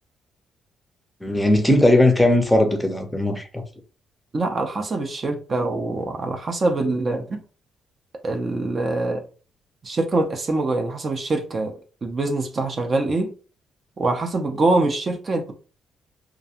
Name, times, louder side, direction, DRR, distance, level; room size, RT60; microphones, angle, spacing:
voice 1, 1.2-3.6, left 1 dB, 5° left, 0.6 m, -18 dB
voice 2, 4.3-7.4 8.2-9.2 9.8-11.7 12.0-13.3 14.0-15.5, right 2 dB, 40° right, 0.5 m, -24 dB
2.4 x 2.2 x 2.8 m
cardioid pair, 90°, 0 cm